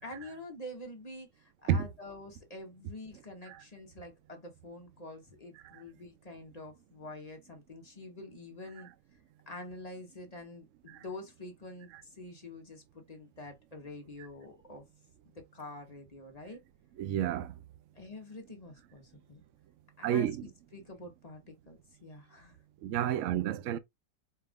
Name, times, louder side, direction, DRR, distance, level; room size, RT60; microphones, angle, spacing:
voice 1, 0.0-8.9 9.5-14.8 15.3-16.6 17.9-19.4 20.0-22.6, left 2 dB, 30° left, 0.7 m, -47 dB
voice 2, 17.0-17.5 20.0-20.5 22.8-23.8, right 10 dB, 80° right, 0.6 m, -30 dB
4.4 x 2.4 x 3.4 m
omnidirectional pair, 1.8 m